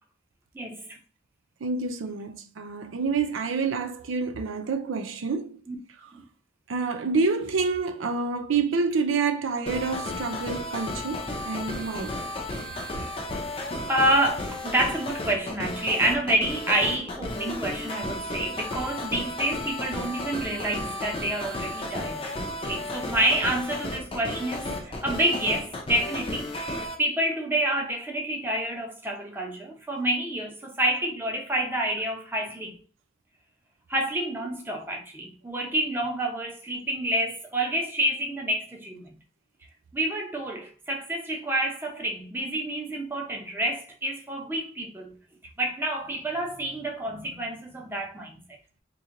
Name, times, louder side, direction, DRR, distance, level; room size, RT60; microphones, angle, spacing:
voice 1, 0.5-1.0 5.7-5.8 6.1-6.2 13.0-13.1 13.9-22.3 22.6-32.8 33.9-39.2 39.9-45.1 45.6-48.4, right 1 dB, 10° right, 0.7 m, -28 dB
voice 2, 1.6-5.6 6.7-12.2 24.7-24.8 36.8-36.9, right 4 dB, 90° right, 0.5 m, -28 dB
sound 1, 9.7-26.9, left 1 dB, 30° left, 0.5 m, -33 dB
3.0 x 2.7 x 3.7 m
head